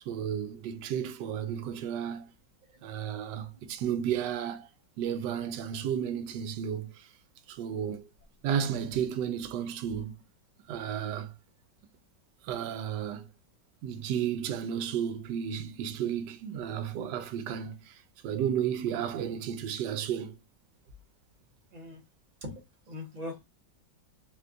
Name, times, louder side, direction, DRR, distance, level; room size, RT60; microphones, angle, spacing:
voice 1, 0.1-2.3 2.8-4.7 5.0-7.1 7.5-8.1 8.4-10.1 10.7-11.3 12.4-13.3 13.8-17.9 18.2-20.4, right 9 dB, 75° right, 1.2 m, -33 dB
voice 2, 21.7-22.0 22.4-23.4, left 1 dB, 25° right, 1.0 m, -42 dB
4.2 x 2.3 x 2.4 m
omnidirectional pair, 2.0 m